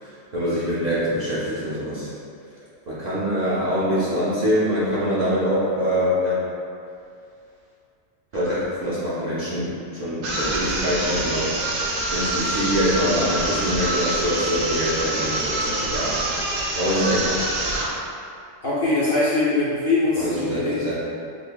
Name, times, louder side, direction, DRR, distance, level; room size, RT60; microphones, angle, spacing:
voice 1, 0.0-2.1 2.9-6.4 8.3-11.5 12.1-16.2 16.7-17.4 20.2-20.9, equal, 50° right, -11 dB, 0.5 m, -24 dB
sound 1, 10.2-18.0, right 2 dB, 80° right, 1.0 m, -26 dB
voice 2, 18.6-20.8, left 2 dB, 55° left, -8 dB, 0.6 m, -22 dB
5.1 x 2.1 x 2.2 m, 2.4 s
omnidirectional pair, 1.3 m